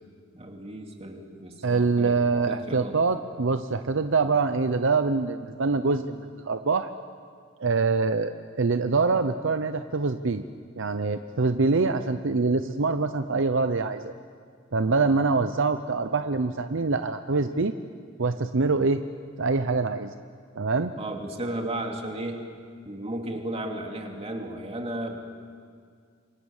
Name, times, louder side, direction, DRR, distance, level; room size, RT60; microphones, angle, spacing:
voice 1, 0.3-3.0 4.2-4.3 21.0-22.4 22.8-25.2, right 1 dB, 30° right, 2 dB, 2.8 m, -34 dB
voice 2, 1.6-6.9 7.6-10.4 10.8-14.1 14.7-17.7 18.2-19.0 19.4-20.1 20.6-20.9, right 4 dB, 65° right, 9 dB, 0.7 m, -24 dB
28.0 x 24.5 x 7.3 m, 2.1 s
head